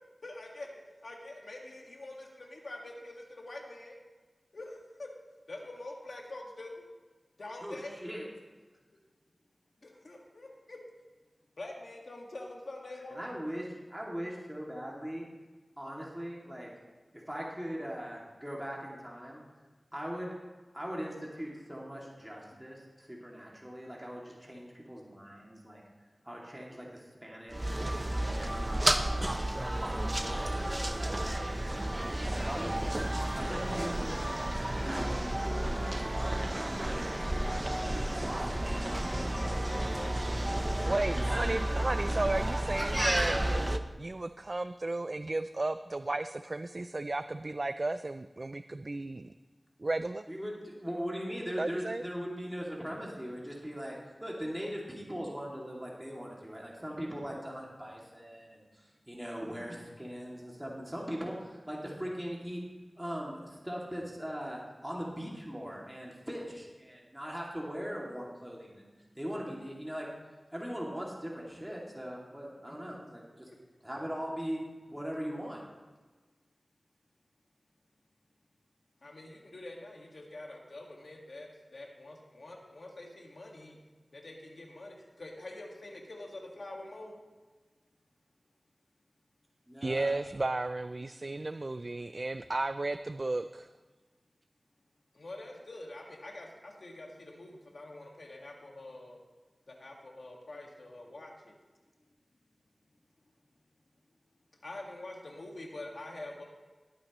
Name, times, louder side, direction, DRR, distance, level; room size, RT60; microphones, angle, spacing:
voice 1, 0.2-0.7 1.0-4.0 4.5-5.1 5.5-6.8 7.4-8.1 9.8-10.8 11.6-13.2 37.1-37.9 38.8-41.3 72.9-73.0 73.5-73.6 79.0-83.8 84.1-87.2 95.1-99.2 99.7-101.5 104.6-106.4, left 2 dB, 75° left, 0 dB, 1.8 m, -46 dB
voice 2, 7.6-8.3 13.1-15.2 15.8-16.7 17.1-19.4 19.9-20.3 20.7-25.8 26.2-27.7 28.3-33.1 33.3-36.4 50.3-62.6 63.0-68.9 69.1-70.1 70.5-73.5 73.8-75.6 89.7-90.1, equal, 10° right, -3 dB, 2.5 m, -40 dB
sound 1, 27.5-43.8, right 1 dB, 25° right, 0.7 m, -31 dB
voice 3, 40.9-43.4 44.0-49.3 49.8-50.2 51.6-52.0 89.8-93.7, right 2 dB, 50° right, 11 dB, 0.3 m, -34 dB
19.5 x 8.9 x 3.1 m, 1.3 s
wide cardioid pair, 60°, 0 cm